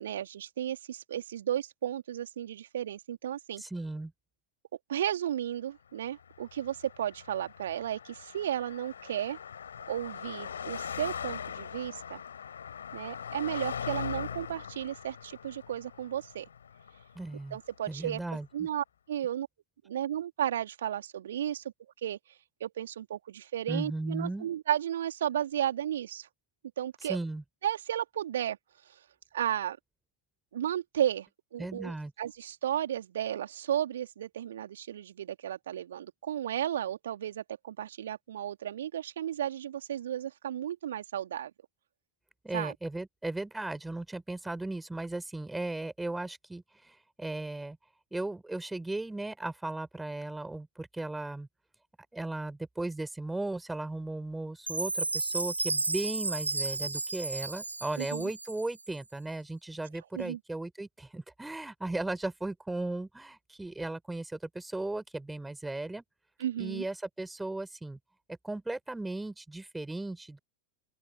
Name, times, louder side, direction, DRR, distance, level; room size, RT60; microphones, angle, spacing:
voice 1, 0.0-3.6 4.9-9.4 9.9-12.2 12.9-16.5 17.5-18.2 18.5-19.5 19.8-21.6 22.0-22.2 22.6-26.3 26.8-27.2 27.6-28.6 29.3-29.8 30.5-41.5 42.5-42.7 58.0-58.3 60.1-60.4 66.4-66.8, right 10 dB, 60° right, 2.9 m, -34 dB
voice 2, 3.6-4.1 17.1-17.6 17.9-18.7 23.7-24.5 27.0-27.4 31.6-32.1 42.4-47.8 48.1-51.5 52.1-66.0 66.6-68.0 68.3-70.4, right 2 dB, 5° right, 5.2 m, -36 dB
Car passing by, 6.2-17.7, left 7 dB, 70° left, 3.1 m, -41 dB
Chime, 54.7-58.9, right 3 dB, 80° right, 1.2 m, -33 dB
open air
figure-of-eight pair, 90°, 0 cm